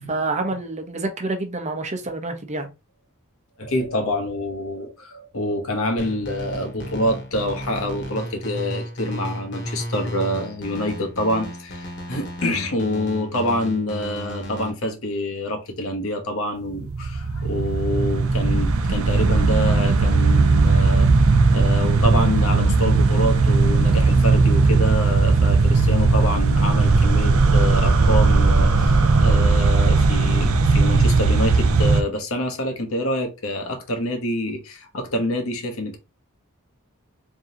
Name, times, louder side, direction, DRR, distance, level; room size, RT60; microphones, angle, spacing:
voice 1, 0.1-2.7, right 2 dB, 35° right, 0.8 m, -27 dB
voice 2, 3.6-36.0, left 1 dB, 70° left, 1.1 m, -26 dB
sound 1, 6.0-14.7, equal, 55° left, 1.4 m, -33 dB
sound 2, 16.8-32.0, right 3 dB, 70° right, 0.6 m, -17 dB
3.8 x 3.6 x 2.9 m
head